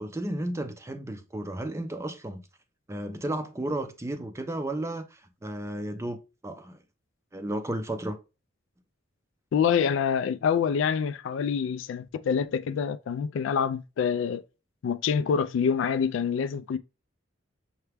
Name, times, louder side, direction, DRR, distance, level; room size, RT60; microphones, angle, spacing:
voice 1, 0.0-2.4 2.9-6.2 6.4-6.8 7.3-8.2, right 1 dB, 15° right, 0.4 m, -33 dB
voice 2, 9.5-14.4 14.8-16.8, left 7 dB, 70° left, 0.3 m, -26 dB
5.7 x 2.2 x 3.3 m
head